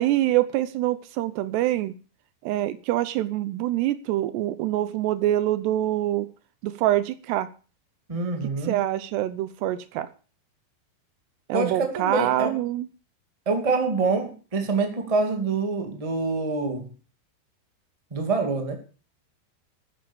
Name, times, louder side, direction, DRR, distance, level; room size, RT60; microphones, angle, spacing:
voice 1, 0.0-2.0 2.4-6.3 6.6-7.5 8.7-10.1 11.5-12.9, right 14 dB, 80° right, 14 dB, 2.8 m, -25 dB
voice 2, 8.1-8.8 11.5-12.6 13.4-16.9 18.1-18.7, right 3 dB, 15° right, 4 dB, 1.3 m, -26 dB
13.0 x 9.7 x 7.1 m, 0.38 s
omnidirectional pair, 5.1 m